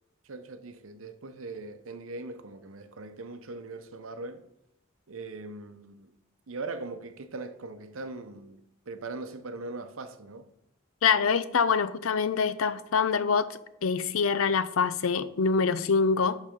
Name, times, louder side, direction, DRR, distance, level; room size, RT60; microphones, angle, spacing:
voice 1, 0.2-4.5 5.1-6.1 6.5-10.5, right 3 dB, 75° right, 0.8 m, -40 dB
voice 2, 11.0-13.5 13.8-16.4, left 5 dB, 85° left, 0.5 m, -25 dB
11.5 x 4.1 x 5.1 m
head